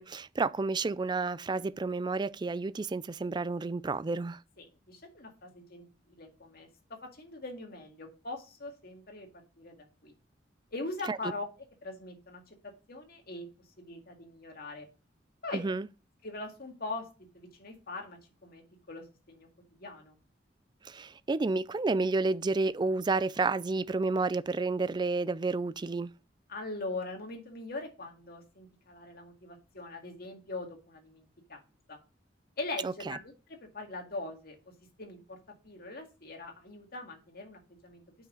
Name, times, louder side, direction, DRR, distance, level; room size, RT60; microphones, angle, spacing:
voice 1, 0.0-4.4 11.1-11.2 15.5-15.9 20.8-26.1 32.8-33.2, right 3 dB, 25° right, 0.3 m, -30 dB
voice 2, 4.6-9.3 9.6-9.8 10.0-10.1 10.7-11.4 11.8-13.5 13.8-14.9 15.4-15.6 16.2-17.1 17.3-19.5 19.8-20.2 26.5-31.6 31.9-32.0 32.6-33.3 33.6-34.6 35.0-35.4 35.6-38.0, left 2 dB, 55° left, 2.0 m, -41 dB
8.5 x 6.0 x 3.8 m
head